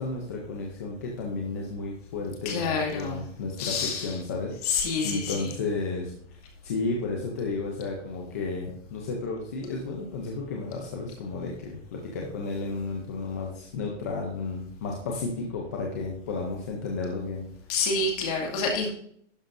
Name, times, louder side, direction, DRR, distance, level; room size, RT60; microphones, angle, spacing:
voice 1, 0.0-4.8 5.0-6.1 6.6-17.4, left 3 dB, 15° left, -1 dB, 0.5 m, -33 dB
voice 2, 2.4-3.2 3.6-4.2 4.6-5.6 17.7-18.9, left 4 dB, 30° left, 1 dB, 2.2 m, -28 dB
11.5 x 10.0 x 2.6 m, 0.65 s
hypercardioid pair, 170°, 37 cm